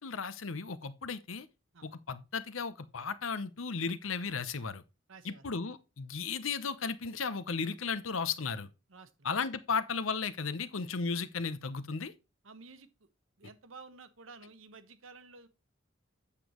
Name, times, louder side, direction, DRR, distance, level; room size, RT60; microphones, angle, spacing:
voice 1, 0.0-1.5 1.8-4.8 5.2-8.7 9.2-12.1, left 5 dB, 85° left, 0.8 m, -35 dB
voice 2, 5.1-5.5 8.9-9.3 12.4-13.1 13.4-15.5, right 4 dB, 75° right, 1.1 m, -52 dB
8.4 x 7.2 x 3.0 m
head